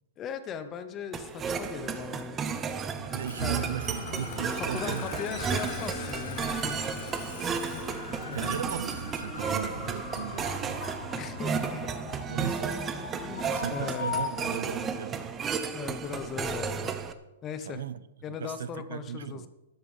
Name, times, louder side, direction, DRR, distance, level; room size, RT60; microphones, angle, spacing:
voice 1, 0.2-3.0 3.4-3.7 4.5-6.7 7.5-7.9 8.3-8.6 11.1-11.9 13.2-14.1 15.7-16.9 17.4-17.8 18.2-19.5, left 7 dB, 20° left, 0.8 m, -39 dB
sound 1, 1.1-17.1, right 6 dB, 15° right, 0.6 m, -33 dB
sound 2, 2.8-14.9, left 6 dB, 85° left, 1.9 m, -41 dB
voice 2, 3.0-5.2 7.1-7.2 8.3-10.9 12.3-12.8 13.5-15.4 17.6-19.5, right 8 dB, 70° right, 0.7 m, -37 dB
Engine starting, 3.2-8.6, left 7 dB, 45° left, 1.6 m, -43 dB
12.5 x 10.5 x 5.5 m
hypercardioid pair, 170°, 0 cm